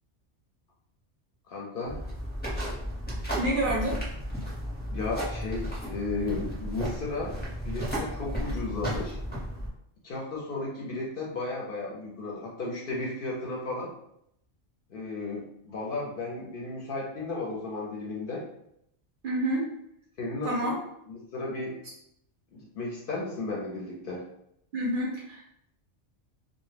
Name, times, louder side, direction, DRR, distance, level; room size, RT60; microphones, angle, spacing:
voice 1, 1.5-2.0 4.9-7.3 7.6-9.2 10.0-13.9 14.9-18.5 20.2-20.5 21.1-21.8 22.5-24.3, left 3 dB, 60° left, -3 dB, 0.6 m, -34 dB
sound 1, 1.9-9.7, equal, 10° left, 0.5 m, -34 dB
voice 2, 3.4-4.0 19.2-19.7 20.4-20.8 24.7-25.4, right 1 dB, 60° right, -3 dB, 0.6 m, -28 dB
2.1 x 2.0 x 3.2 m, 0.75 s
omnidirectional pair, 1.2 m